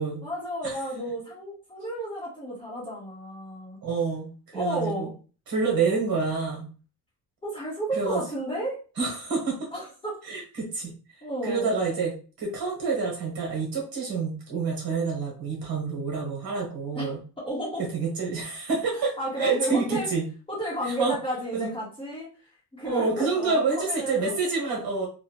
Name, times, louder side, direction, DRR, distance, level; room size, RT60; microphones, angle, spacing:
voice 1, 0.2-3.8 4.5-5.1 7.4-8.8 9.7-10.2 11.2-11.7 16.9-17.2 17.4-17.8 18.9-20.1 20.5-22.3 22.7-24.3, right 1 dB, 15° left, -6 dB, 1.1 m, -32 dB
voice 2, 3.8-5.1 5.5-6.7 7.9-8.2 9.0-9.7 10.2-10.9 11.4-17.2 17.8-20.3 21.0-21.2 21.5-21.7 22.8-25.1, right 4 dB, 65° right, -2 dB, 1.4 m, -28 dB
2.7 x 2.4 x 2.9 m, 0.36 s
cardioid pair, 180°, 38 cm